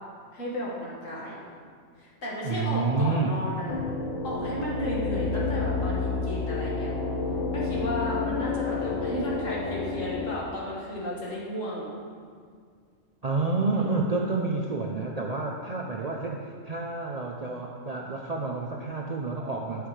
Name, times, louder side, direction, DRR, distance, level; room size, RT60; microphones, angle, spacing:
voice 1, 0.3-1.4 2.0-3.9 4.2-6.9 7.5-11.9 13.7-14.3, left 1 dB, 80° left, -5 dB, 2.2 m, -34 dB
voice 2, 2.4-3.3 13.2-19.9, right 3 dB, 50° right, -1 dB, 0.5 m, -29 dB
sound 1, 3.7-10.4, left 4 dB, 45° left, 0.6 m, -30 dB
11.0 x 6.6 x 3.2 m, 2.1 s
omnidirectional pair, 1.3 m